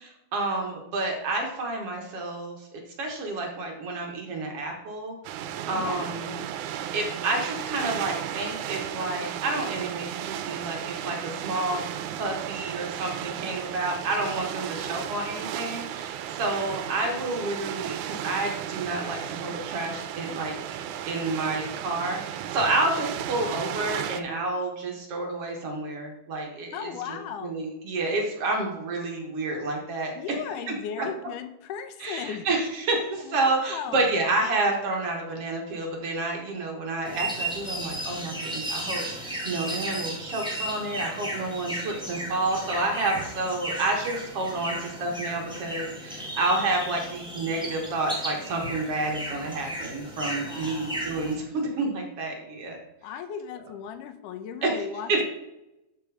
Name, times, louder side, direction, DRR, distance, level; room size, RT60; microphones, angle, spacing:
voice 1, 0.0-2.6 3.0-5.2 5.7-6.3 6.9-11.8 12.2-20.5 21.1-26.9 27.4-30.1 31.0-31.1 32.0-52.8 54.6-54.8 55.1-55.2, right 2 dB, 55° right, 1 dB, 2.0 m, -29 dB
sound 1, 5.2-24.2, right 10 dB, 80° right, 1.9 m, -34 dB
voice 2, 5.7-6.1 26.7-27.5 30.2-32.5 33.2-34.1 50.5-51.0 53.0-55.3, left 8 dB, 90° left, 9 dB, 2.3 m, -36 dB
sound 2, 37.0-51.3, right 1 dB, 5° right, 0.8 m, -35 dB
11.5 x 4.5 x 4.8 m, 0.91 s
omnidirectional pair, 3.6 m